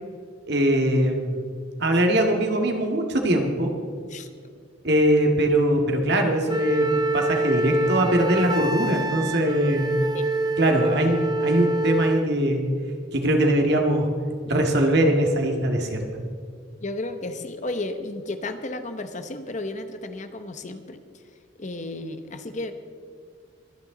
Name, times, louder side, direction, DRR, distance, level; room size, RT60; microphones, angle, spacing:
voice 1, 0.5-1.5 1.8-3.7 4.8-9.9 10.6-12.6 13.1-14.1 14.5-16.0, right 1 dB, 55° right, 3 dB, 1.9 m, -21 dB
voice 2, 4.1-4.5 16.8-21.0 21.6-22.7, left 2 dB, 40° left, 9 dB, 0.9 m, -33 dB
Wind instrument woodwind instrument, 6.5-12.3, right 2 dB, 20° right, 0.7 m, -26 dB
23.0 x 9.5 x 3.9 m, 2.2 s
head